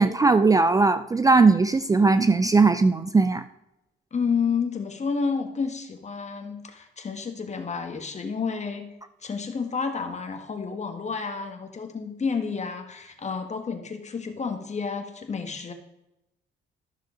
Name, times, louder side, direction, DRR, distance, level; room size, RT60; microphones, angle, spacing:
voice 1, 0.0-3.4, right 3 dB, 15° right, 11 dB, 0.4 m, -19 dB
voice 2, 4.1-8.9 9.2-15.7, left 5 dB, 35° left, 5 dB, 1.6 m, -30 dB
13.5 x 6.5 x 3.9 m, 0.91 s
cardioid pair, 90°, 20 cm